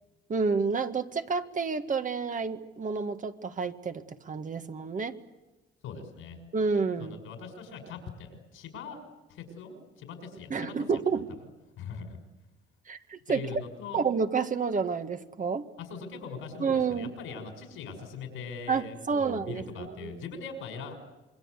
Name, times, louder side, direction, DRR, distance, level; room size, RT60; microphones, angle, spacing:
voice 1, 0.3-5.2 6.5-7.2 10.5-11.3 12.9-13.6 13.9-15.7 16.6-17.1 18.7-20.1, right 5 dB, 40° right, 8 dB, 1.8 m, -29 dB
voice 2, 5.8-6.4 7.0-9.0 9.3-11.0 11.8-12.2 13.3-14.0 15.8-21.0, left 5 dB, 90° left, 6 dB, 6.1 m, -41 dB
27.0 x 22.5 x 8.3 m, 1.0 s
cardioid pair, 90°, 20 cm